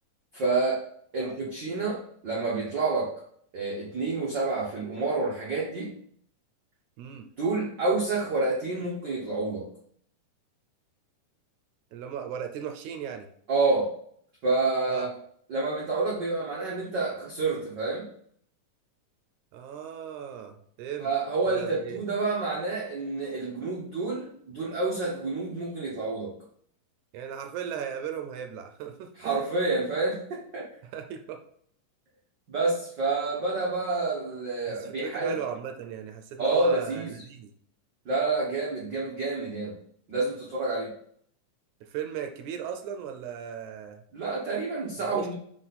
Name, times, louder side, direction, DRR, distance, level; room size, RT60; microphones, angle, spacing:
voice 1, 0.3-0.8 1.1-3.1 3.5-6.0 7.4-9.7 13.5-14.0 14.4-15.1 15.5-18.1 21.0-26.3 29.2-30.7 32.5-35.3 36.4-37.1 38.0-39.7 40.1-40.9 44.1-45.3, right 3 dB, 60° right, -5 dB, 1.2 m, -28 dB
voice 2, 1.2-1.5 7.0-7.3 11.9-13.3 14.9-15.1 19.5-21.1 21.5-22.0 27.1-29.4 30.8-31.4 34.7-37.5 41.8-44.0 45.0-45.3, right 8 dB, 80° right, 6 dB, 1.9 m, -37 dB
5.9 x 4.7 x 4.1 m, 0.64 s
omnidirectional pair, 3.6 m